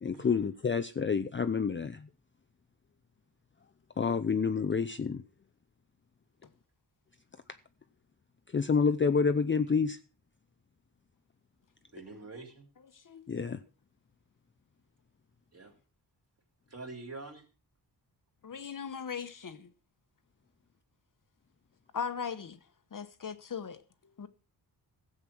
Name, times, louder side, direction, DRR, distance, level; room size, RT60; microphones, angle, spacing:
voice 1, 0.0-2.1 4.0-5.2 8.5-10.0 13.3-13.6, left 5 dB, 30° left, 0.5 m, -28 dB
voice 2, 11.9-12.7 15.5-15.7 16.7-17.4, right 3 dB, 35° right, 3.3 m, -45 dB
voice 3, 18.4-19.7 21.9-22.6 22.9-23.8 24.2-24.3, left 6 dB, 50° left, 1.1 m, -38 dB
15.5 x 7.9 x 6.0 m
wide cardioid pair, 155°, 41 cm